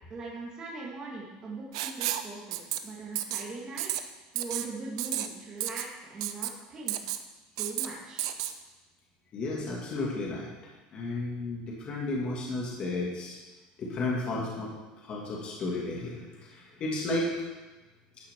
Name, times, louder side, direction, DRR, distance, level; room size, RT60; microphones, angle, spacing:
voice 1, 0.1-3.9 4.3-7.1 7.6-8.3, right 3 dB, 25° right, -3 dB, 2.0 m, -40 dB
Writing, 1.7-2.3 2.5-2.8 3.1-3.4 3.8-4.0 4.4-4.7 5.0-5.3 5.6-5.9 6.2-6.5 6.9-7.2 7.6-7.9 8.2-8.5, right 13 dB, 85° right, 0.7 m, -31 dB
voice 2, 9.3-10.5 10.9-13.4 13.8-17.3, left 2 dB, 35° left, -3 dB, 2.3 m, -33 dB
12.5 x 8.9 x 3.8 m, 1.2 s
cardioid pair, 145°, 3 cm